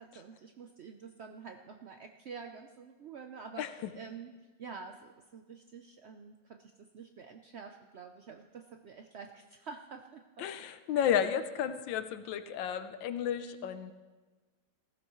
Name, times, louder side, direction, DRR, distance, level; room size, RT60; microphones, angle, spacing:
voice 1, 0.0-4.3 4.6-10.4 10.9-11.2 11.6-11.8, right 5 dB, 75° right, 4 dB, 0.6 m, -48 dB
voice 2, 3.6-3.9 10.4-13.9, left 9 dB, 85° left, 10 dB, 1.4 m, -32 dB
20.5 x 15.0 x 3.1 m, 1.3 s
omnidirectional pair, 2.0 m